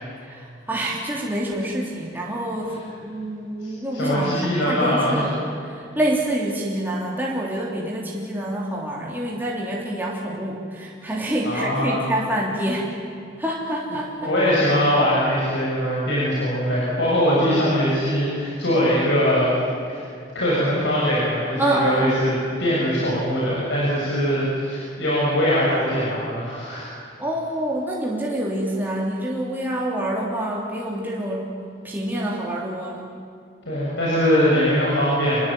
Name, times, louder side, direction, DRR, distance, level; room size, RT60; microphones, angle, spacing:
voice 1, 0.2-5.3 5.6-13.0 13.4-14.3 21.6-22.1 27.2-31.5 31.8-33.1, right 1 dB, 10° right, -4 dB, 3.3 m, -27 dB
voice 2, 3.6-5.3 11.4-12.0 14.2-19.6 19.9-20.0 20.3-22.3 22.6-26.9 33.7-35.5, equal, 65° left, -6 dB, 7.4 m, -21 dB
27.5 x 22.0 x 9.0 m, 2.4 s
head